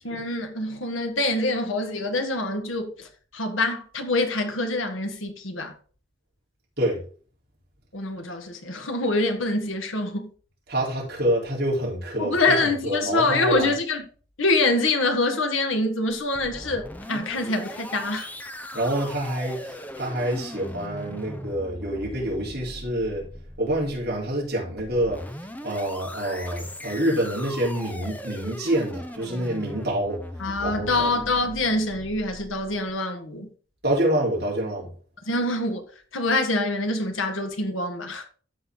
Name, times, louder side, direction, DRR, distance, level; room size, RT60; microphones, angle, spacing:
voice 1, 0.0-3.1 3.3-5.7 7.9-10.3 12.2-14.0 14.4-18.3 30.4-33.5 35.3-35.8 36.1-38.2, left 2 dB, 80° left, 1.6 m, -25 dB
voice 2, 10.7-13.7 18.7-23.3 23.6-25.2 25.6-30.2 30.6-31.1 33.8-34.9, right 1 dB, 55° right, 4.0 m, -27 dB
sound 1, 16.1-32.9, left 1 dB, 10° left, 0.7 m, -39 dB
13.0 x 4.5 x 3.9 m
head